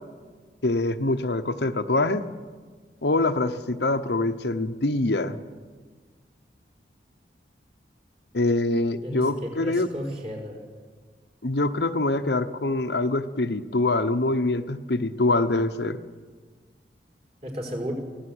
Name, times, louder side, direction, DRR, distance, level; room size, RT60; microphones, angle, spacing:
voice 1, 0.6-2.2 3.0-5.4 8.3-9.9 11.4-16.0, left 2 dB, 75° left, 8 dB, 1.0 m, -24 dB
voice 2, 9.6-10.6 17.4-17.9, equal, 35° right, 0 dB, 4.9 m, -33 dB
23.5 x 16.5 x 8.0 m, 1.5 s
head